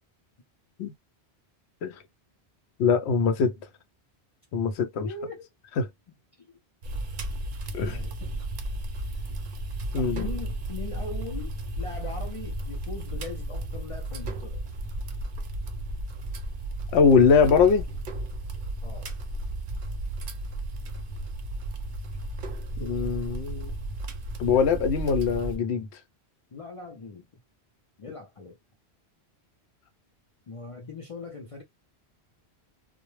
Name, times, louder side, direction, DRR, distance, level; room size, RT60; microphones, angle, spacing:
voice 1, 2.8-3.5 4.5-5.1 5.8-5.9 7.7-8.1 9.9-10.3 16.9-17.9 22.8-23.7 24.4-26.0, left 5 dB, 80° left, 0.8 m, -22 dB
voice 2, 5.0-5.5 6.4-6.5 7.3-7.4 7.8-8.3 9.9-14.6 18.8-19.1 26.5-27.2 28.0-28.6 30.5-31.6, left 3 dB, 50° left, 0.4 m, -40 dB
sound 1, 6.8-25.6, right 1 dB, 60° right, 0.6 m, -34 dB
2.1 x 2.0 x 3.0 m
omnidirectional pair, 1.1 m